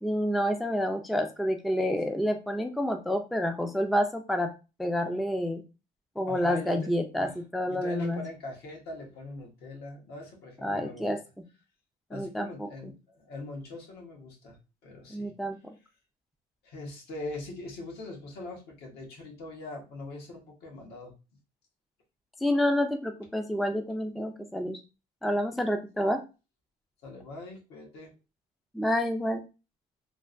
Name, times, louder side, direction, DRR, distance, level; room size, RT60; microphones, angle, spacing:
voice 1, 0.0-4.5 4.8-5.6 6.2-8.2 10.6-11.2 12.1-12.9 15.1-15.7 22.4-24.8 25.2-26.2 28.7-29.4, equal, ahead, 6 dB, 0.3 m, -28 dB
voice 2, 6.3-7.0 7.2-7.3 7.7-11.2 12.1-14.6 14.8-15.3 16.6-21.1 27.0-28.1, left 2 dB, 75° left, 0 dB, 1.3 m, -41 dB
3.2 x 2.1 x 2.5 m, 0.30 s
cardioid pair, 110°, 17 cm